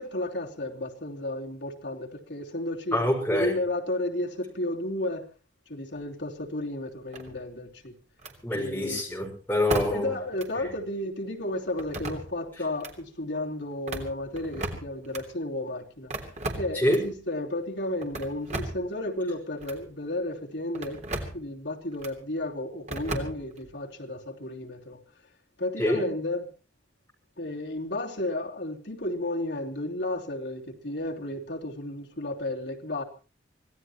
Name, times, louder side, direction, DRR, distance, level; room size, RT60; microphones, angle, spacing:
voice 1, 0.0-3.0 3.3-5.3 5.7-7.9 8.5-9.0 9.9-16.1 16.5-21.0 21.3-25.0 25.6-26.5 27.4-33.0, left 1 dB, 60° left, 3.1 m, -33 dB
voice 2, 2.9-3.5 8.4-10.1 10.6-10.7 16.7-17.0 25.8-26.0, left 1 dB, 10° left, 5.9 m, -25 dB
sound 1, 7.1-7.7 8.2-8.4 9.7-10.1 10.4-10.5 11.8-12.4 12.7-12.9 13.7-15.2 16.1-17.1 18.0-18.9 19.6-19.8 20.7-21.4 22.0-22.2 22.9-23.7, right 2 dB, 35° right, 3.3 m, -35 dB
26.0 x 17.5 x 3.1 m
head